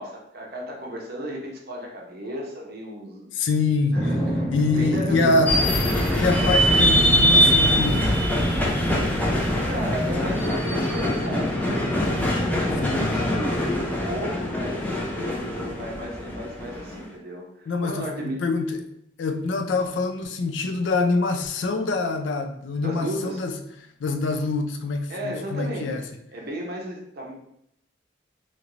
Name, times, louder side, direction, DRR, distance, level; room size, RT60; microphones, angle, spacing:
voice 1, 0.0-3.3 3.9-5.7 9.7-12.0 12.5-18.4 22.8-23.4 25.1-26.0 26.3-27.4, equal, 55° right, 0 dB, 0.7 m, -34 dB
voice 2, 3.3-4.1 4.5-5.5 6.1-8.2 12.8-13.3 17.7-18.8 19.2-23.5 24.0-26.0, left 3 dB, 75° left, 6 dB, 0.4 m, -25 dB
Drum, 3.9-15.0, equal, 25° left, 1.3 m, -30 dB
sound 1, 5.5-17.0, equal, 10° left, 0.5 m, -23 dB
2.9 x 2.5 x 3.0 m, 0.75 s
head